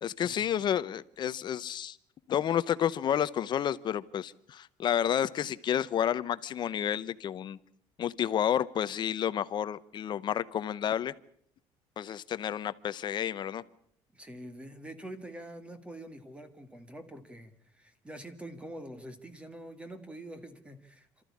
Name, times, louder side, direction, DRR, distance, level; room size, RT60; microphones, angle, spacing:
voice 1, 0.0-2.0 2.3-7.6 8.0-11.1 12.0-13.6, left 9 dB, 40° left, 15 dB, 0.8 m, -30 dB
voice 2, 14.1-21.2, right 1 dB, 10° right, 10 dB, 2.0 m, -45 dB
27.5 x 14.0 x 8.5 m, 0.65 s
cardioid pair, 145°, 12 cm